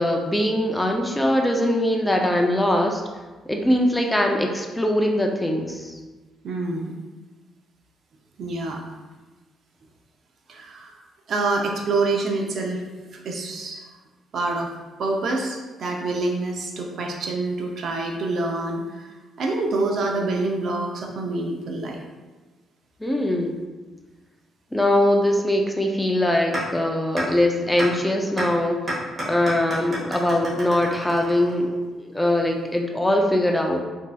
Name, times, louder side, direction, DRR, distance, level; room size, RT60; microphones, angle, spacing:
voice 1, 0.0-3.0 3.5-6.0 23.0-23.6 24.7-28.8 29.3-31.7 32.0-33.8, left 1 dB, 10° left, 2 dB, 0.4 m, -22 dB
voice 2, 6.4-6.9 8.4-8.8 10.5-10.9 11.3-12.8 13.1-13.8 14.3-14.7 15.0-19.1 19.4-22.0, right 2 dB, 60° right, 2 dB, 0.5 m, -26 dB
sound 1, 26.5-26.6 27.2-27.3 27.8-27.9 28.4-28.5 28.9-31.8, right 1 dB, 30° right, 1.3 m, -29 dB
4.1 x 2.7 x 2.3 m, 1.3 s
cardioid pair, 90°, 0 cm